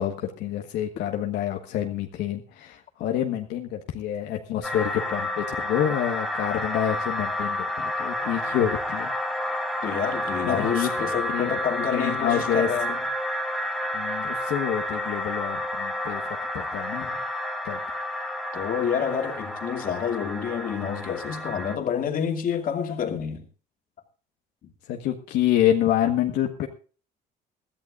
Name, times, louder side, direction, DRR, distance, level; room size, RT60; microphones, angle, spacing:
voice 1, 0.0-9.1 10.4-10.9 11.3-11.6 11.9-12.7 13.9-17.2 17.6-17.8 24.9-26.7, left 10 dB, 85° left, 1.4 m, -27 dB
sound 1, 4.6-21.8, left 1 dB, ahead, 1.5 m, -30 dB
voice 2, 9.8-13.1 18.5-23.4, left 7 dB, 55° left, 2.5 m, -28 dB
21.5 x 14.0 x 2.5 m
cardioid pair, 110°, 17 cm